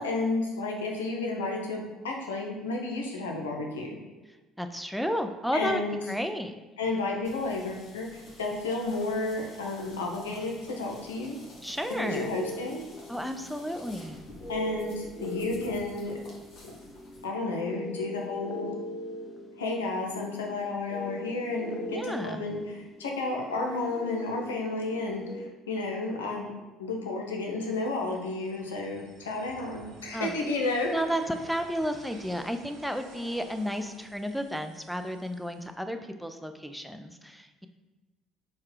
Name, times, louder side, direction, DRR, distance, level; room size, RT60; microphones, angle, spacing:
voice 1, 0.0-4.0 5.5-6.0 6.8-11.4 12.0-12.8 14.5-16.2 16.6-16.7 17.2-18.7 19.6-26.5 26.8-30.9, left 3 dB, 80° left, 0 dB, 0.7 m, -32 dB
voice 2, 4.6-5.8 6.1-6.6 11.6-12.3 13.1-14.2 21.9-22.4 30.1-30.3 30.9-37.7, equal, ahead, 7 dB, 0.5 m, -32 dB
sound 1, 7.2-17.2, left 1 dB, 50° left, 1.2 m, -51 dB
sound 2, 11.8-25.5, left 1 dB, 25° left, 0.8 m, -40 dB
sound 3, 27.7-35.7, right 3 dB, 65° right, 0.8 m, -52 dB
4.5 x 2.3 x 4.6 m, 1.2 s
figure-of-eight pair, 55°, 0 cm